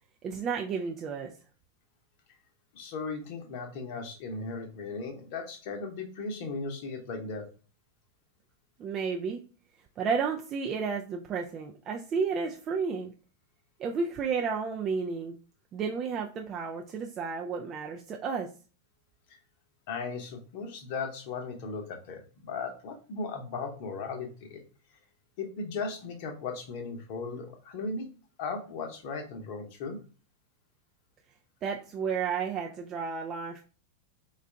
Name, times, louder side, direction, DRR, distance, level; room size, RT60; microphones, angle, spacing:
voice 1, 0.2-1.3 8.8-9.4 10.0-13.1 13.8-15.4 15.7-18.5 31.6-33.6, right 5 dB, 30° right, 1 dB, 0.4 m, -32 dB
voice 2, 2.7-7.5 19.9-24.6 25.4-28.1 28.4-30.0, left 4 dB, 45° left, 4 dB, 0.9 m, -37 dB
4.4 x 2.4 x 3.4 m, 0.36 s
figure-of-eight pair, 90°, 0 cm